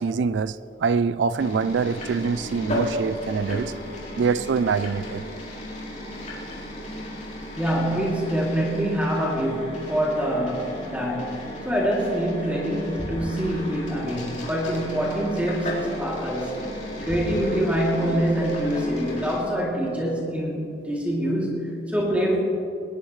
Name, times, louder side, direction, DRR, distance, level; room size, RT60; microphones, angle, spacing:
voice 1, 0.0-3.7 4.2-5.2, right 5 dB, 80° right, 0.4 m, -24 dB
sound 1, 1.4-19.4, equal, 45° left, 4.2 m, -34 dB
voice 2, 7.6-16.6 17.0-22.4, equal, 10° right, 2.7 m, -25 dB
20.5 x 20.5 x 3.2 m
head